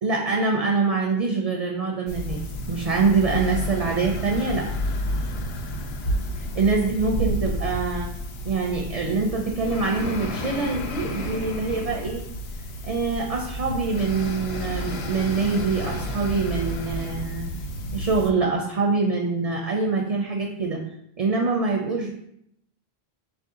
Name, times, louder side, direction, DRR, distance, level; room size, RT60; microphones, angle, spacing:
voice 1, 0.0-2.4 2.7-4.7 6.3-8.1 8.4-12.2 12.8-17.5 17.9-20.8 21.2-22.1, right 4 dB, 50° right, 1 dB, 0.4 m, -24 dB
sound 1, 2.1-18.3, equal, 75° left, 0.8 m, -31 dB
4.1 x 2.6 x 3.7 m, 0.74 s
omnidirectional pair, 1.1 m